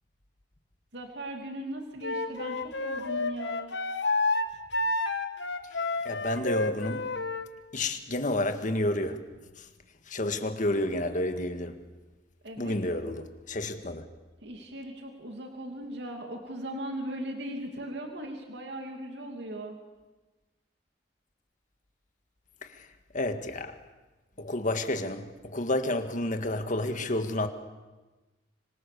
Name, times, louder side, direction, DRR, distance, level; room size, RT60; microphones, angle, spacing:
voice 1, 0.9-3.7 12.4-12.8 14.4-19.8, right 1 dB, 70° right, 2.8 m, -38 dB
Wind instrument woodwind instrument, 2.0-7.5, left 2 dB, 70° left, 1.5 m, -30 dB
voice 2, 6.1-7.1 7.7-9.2 9.6-9.7 10.1-11.8 12.6-14.1 22.6-22.9 23.1-23.8 24.4-27.5, left 1 dB, 45° left, 1.8 m, -30 dB
25.5 x 25.5 x 7.0 m
head